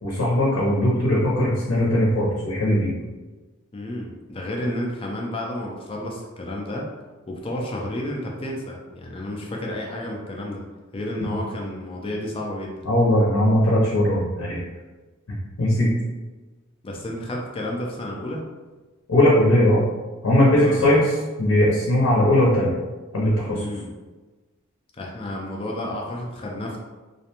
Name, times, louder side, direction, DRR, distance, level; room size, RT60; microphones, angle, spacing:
voice 1, 0.0-2.9 12.9-14.6 15.6-15.9 19.1-19.8 20.2-21.1 21.4-22.7 23.1-23.6, left 1 dB, 80° left, -5 dB, 0.6 m, -19 dB
voice 2, 3.7-6.9 7.3-10.6 10.9-12.8 16.8-18.4 20.5-21.0 23.4-23.9 25.0-26.8, left 1 dB, 25° left, -1 dB, 0.3 m, -31 dB
2.5 x 2.1 x 2.8 m, 1.2 s
head